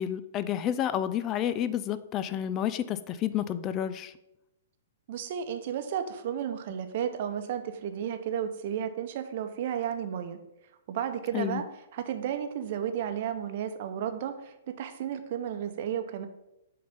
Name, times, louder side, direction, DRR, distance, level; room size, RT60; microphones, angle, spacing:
voice 1, 0.0-4.1 11.3-11.6, left 10 dB, 30° left, 14 dB, 0.4 m, -30 dB
voice 2, 5.1-10.4 10.9-11.6 11.9-16.3, right 9 dB, 50° right, 8 dB, 0.8 m, -33 dB
6.6 x 3.9 x 5.5 m, 0.88 s
figure-of-eight pair, 115°, 0 cm